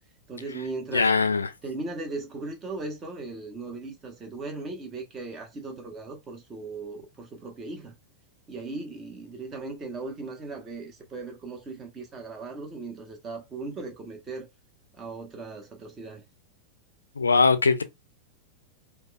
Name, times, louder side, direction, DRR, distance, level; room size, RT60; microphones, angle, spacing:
voice 1, 0.3-1.1 1.6-7.9 8.5-14.5 14.9-16.2, right 3 dB, 25° right, 1.1 m, -38 dB
voice 2, 0.9-1.5 17.2-17.8, left 4 dB, 75° left, 0.4 m, -21 dB
4.7 x 2.3 x 2.3 m
figure-of-eight pair, 90°, 0 cm